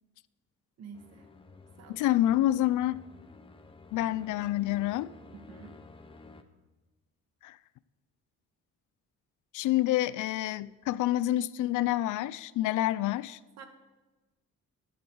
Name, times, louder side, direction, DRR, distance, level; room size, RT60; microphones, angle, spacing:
voice 1, 0.8-1.2 1.8-2.0 5.5-5.8 13.6-13.7, right 6 dB, 60° right, 1.8 m, -48 dB
sound 1, 0.9-6.4, left 3 dB, 20° left, 0.9 m, -52 dB
voice 2, 1.9-3.0 3.9-5.1 7.4-7.6 9.5-13.4, left 14 dB, 85° left, 0.6 m, -28 dB
19.5 x 11.0 x 4.8 m
cardioid pair, 165°, 29 cm